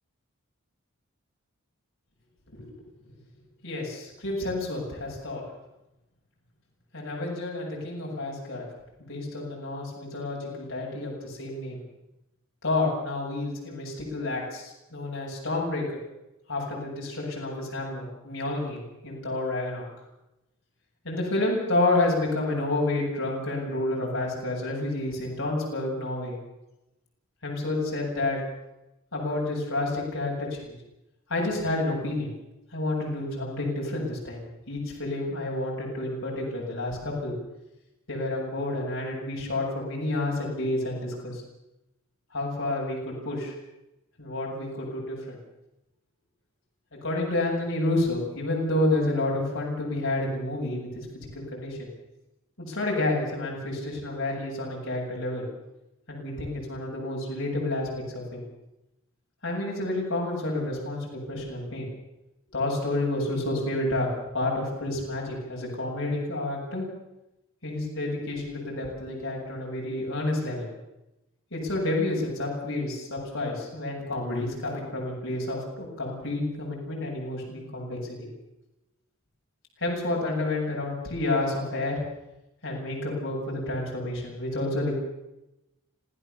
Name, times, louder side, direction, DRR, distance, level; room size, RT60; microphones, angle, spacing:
voice 1, 3.6-5.4 6.9-8.6 9.0-11.8 12.6-16.0 16.5-19.9 21.0-26.4 27.4-28.4 29.1-30.7 31.3-32.3 32.7-37.3 38.1-41.4 42.3-43.5 44.2-45.4 47.0-51.9 52.6-55.5 56.1-58.4 59.4-61.9 62.5-66.8 67.6-70.7 71.5-78.3 79.8-82.0 82.6-84.9, left 2 dB, 65° left, -2 dB, 7.9 m, -29 dB
27.0 x 16.0 x 7.1 m, 0.92 s
head